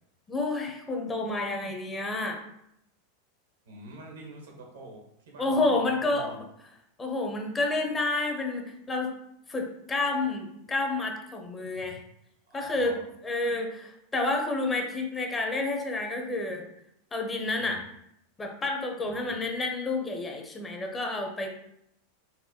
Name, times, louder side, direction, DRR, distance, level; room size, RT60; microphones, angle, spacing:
voice 1, 0.3-2.4 5.4-6.4 7.0-9.1 9.5-12.0 12.5-13.0 13.2-16.6 17.1-17.8 18.4-21.5, left 2 dB, 20° left, 2 dB, 0.6 m, -29 dB
voice 2, 3.6-6.4 11.7-12.0 12.5-13.0 17.6-17.8 19.0-19.4, right 1 dB, 90° right, 0 dB, 1.0 m, -47 dB
4.0 x 2.1 x 2.8 m, 0.78 s
hypercardioid pair, 110°, 0 cm